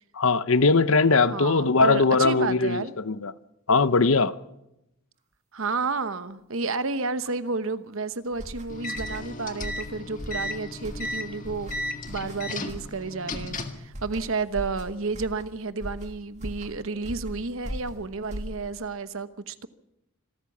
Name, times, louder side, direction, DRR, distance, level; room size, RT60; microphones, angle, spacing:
voice 1, 0.1-3.3 3.7-4.3, left 4 dB, 65° left, 0.8 m, -20 dB
voice 2, 1.3-2.9 5.5-11.7 12.1-19.7, right 4 dB, 65° right, 1.0 m, -31 dB
sound 1, 8.3-18.9, equal, 30° right, 2.8 m, -40 dB
sound 2, 8.7-13.9, left 1 dB, 35° left, 1.8 m, -35 dB
26.0 x 13.5 x 7.3 m
head